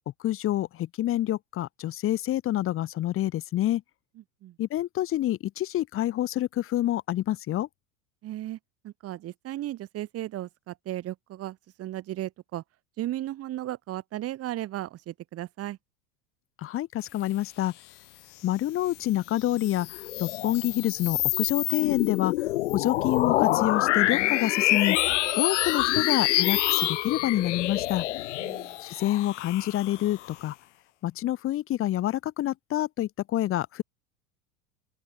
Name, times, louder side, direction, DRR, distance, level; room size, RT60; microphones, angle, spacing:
voice 1, 0.2-3.8 4.6-7.7 16.6-17.7 18.4-22.3 22.7-25.0 25.4-28.0 28.8-30.5 31.0-33.8, left 13 dB, 35° left, 1.5 m, -27 dB
voice 2, 8.2-8.6 8.8-12.6 13.0-15.8 28.4-28.7, right 14 dB, 35° right, 2.7 m, -35 dB
sound 1, 19.4-30.3, left 16 dB, 60° left, 2.2 m, -27 dB
open air
figure-of-eight pair, 75°, 40 cm